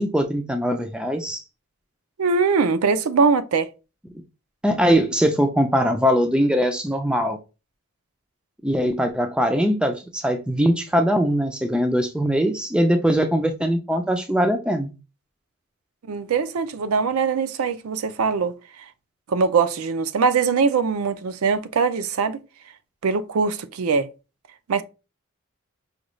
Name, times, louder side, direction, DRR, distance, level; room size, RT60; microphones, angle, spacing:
voice 1, 0.0-1.4 4.6-7.4 8.6-14.9, equal, 5° right, 0.3 m, -21 dB
voice 2, 2.2-3.7 16.1-18.8 19.3-22.4 23.0-24.1 24.7-24.8, right 5 dB, 85° right, 0.4 m, -22 dB
5.0 x 2.3 x 3.1 m
head